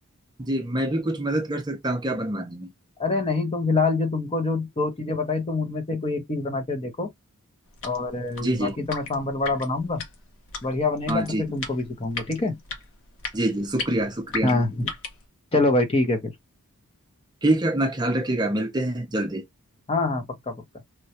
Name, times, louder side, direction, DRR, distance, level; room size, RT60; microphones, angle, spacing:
voice 1, 0.4-2.7 8.4-8.8 11.1-11.4 13.3-14.5 17.4-19.4, right 1 dB, 20° right, 0.5 m, -25 dB
voice 2, 3.0-7.1 7.8-10.0 10.6-12.6 14.4-14.9 15.5-16.3 19.9-20.6, left 3 dB, 25° left, 0.7 m, -25 dB
sound 1, 7.7-15.2, left 4 dB, 60° left, 0.8 m, -37 dB
3.1 x 2.3 x 2.7 m
head